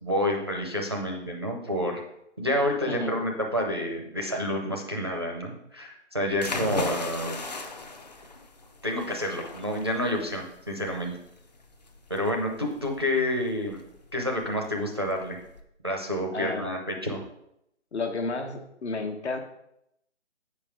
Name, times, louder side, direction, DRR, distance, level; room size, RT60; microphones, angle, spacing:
voice 1, 0.0-2.0 2.4-7.4 8.8-11.1 12.1-13.8 14.1-15.4 15.8-17.2, left 1 dB, 20° right, 0 dB, 0.5 m, -29 dB
voice 2, 2.9-3.2 16.3-16.7 17.9-19.4, left 3 dB, 65° left, 5 dB, 1.3 m, -32 dB
sound 1, 6.3-15.6, left 3 dB, 35° left, 0.6 m, -38 dB
8.1 x 5.3 x 4.8 m, 0.79 s
hypercardioid pair, 165°, 37 cm